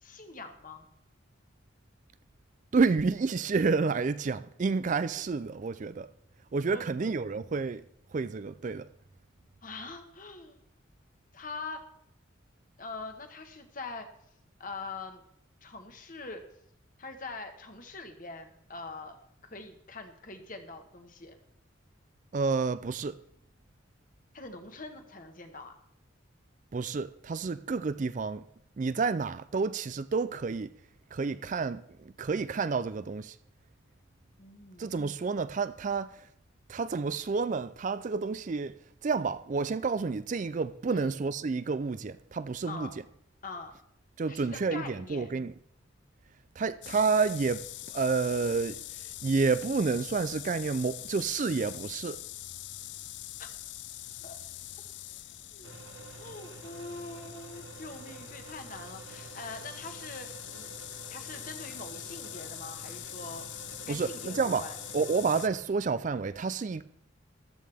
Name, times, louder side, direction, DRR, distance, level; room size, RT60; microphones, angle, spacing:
voice 1, 0.0-0.9 6.7-7.2 9.6-10.6 11.3-11.8 12.8-14.1 14.6-15.2 15.6-16.4 17.0-19.2 19.4-21.4 24.3-25.7 34.4-34.9 40.9-41.1 42.7-42.9 43.4-43.7 44.3-45.3 53.4-53.5 54.2-54.4 55.5-55.7 56.2-60.8 61.1-63.4 63.9-64.8, left 3 dB, 45° left, 1.4 m, -43 dB
voice 2, 2.7-6.1 6.5-7.8 8.1-8.9 22.3-23.2 26.7-28.4 28.8-30.7 31.1-31.8 32.2-33.3 34.8-36.1 36.7-38.8 39.0-42.9 44.2-45.5 46.6-48.8 49.2-52.2 63.9-64.6 64.9-66.8, right 4 dB, 40° right, 0.4 m, -29 dB
sound 1, 46.8-65.5, left 14 dB, 60° left, 0.5 m, -44 dB
sound 2, 55.6-65.6, right 4 dB, 85° right, 1.2 m, -49 dB
14.0 x 12.5 x 3.5 m
head